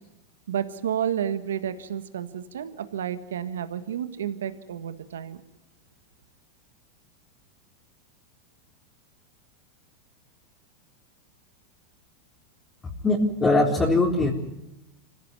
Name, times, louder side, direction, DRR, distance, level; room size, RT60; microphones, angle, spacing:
voice 1, 0.5-5.4, right 9 dB, 85° right, 11 dB, 1.5 m, -31 dB
voice 2, 13.0-14.3, left 2 dB, 20° left, -2 dB, 4.1 m, -21 dB
25.0 x 15.5 x 9.7 m, 0.92 s
hypercardioid pair, 110°, 0 cm